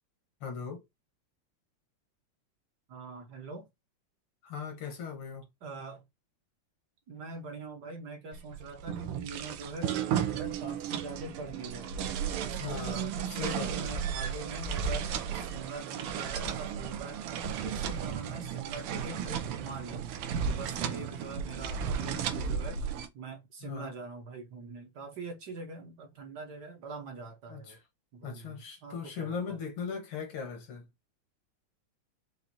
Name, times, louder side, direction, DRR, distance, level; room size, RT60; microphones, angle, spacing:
voice 1, 0.4-0.8 4.4-5.4 12.5-13.9 23.6-23.9 27.5-27.8 28.2-30.9, left 6 dB, 75° left, 2.1 m, -39 dB
voice 2, 2.9-3.7 5.6-6.0 7.1-11.9 12.3-15.1 15.3-17.2 17.6-20.1 20.5-22.8 23.1-27.8 28.1-29.6, right 3 dB, 60° right, 1.4 m, -43 dB
water pump manual old, 8.3-23.1, right 7 dB, 85° right, 1.6 m, -34 dB
5.9 x 2.6 x 2.6 m
omnidirectional pair, 2.4 m